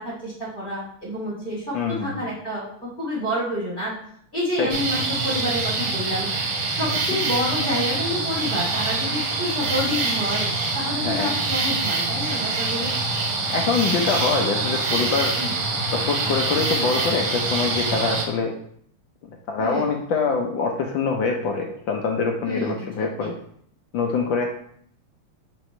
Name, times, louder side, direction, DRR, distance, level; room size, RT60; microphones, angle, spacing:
voice 1, 0.0-3.9 4.3-6.3 6.8-12.9 15.4-15.5 19.6-19.9 22.4-22.8 23.2-23.3, left 1 dB, 25° left, -7 dB, 2.6 m, -28 dB
voice 2, 1.7-2.2 4.6-4.7 11.0-11.4 13.5-15.4 15.7-18.5 19.5-23.3 23.9-24.5, left 5 dB, 65° left, 1 dB, 1.4 m, -24 dB
sound 1, 4.7-18.2, right 3 dB, 80° right, 2.0 m, -25 dB
4.8 x 4.2 x 5.4 m, 0.63 s
omnidirectional pair, 2.4 m